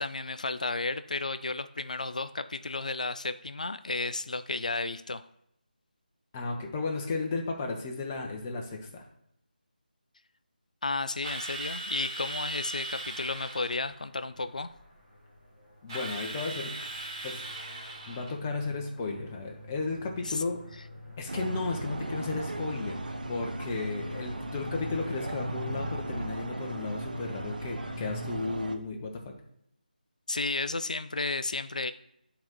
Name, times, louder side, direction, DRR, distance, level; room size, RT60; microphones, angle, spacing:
voice 1, 0.0-5.2 10.8-14.7 20.2-20.4 30.3-31.9, left 3 dB, 50° left, 13 dB, 0.4 m, -33 dB
voice 2, 6.3-9.0 15.8-16.8 17.2-17.4 18.1-20.6 21.2-29.4, left 3 dB, 15° left, 2 dB, 0.7 m, -34 dB
Drill, 11.2-13.9 15.9-18.4, right 2 dB, 30° right, 2.0 m, -38 dB
sound 1, 13.0-28.4, left 2 dB, 5° right, 1.0 m, -46 dB
sound 2, 21.3-28.8, right 2 dB, 60° right, 0.7 m, -37 dB
10.5 x 3.9 x 3.0 m, 0.76 s
figure-of-eight pair, 160°, 5 cm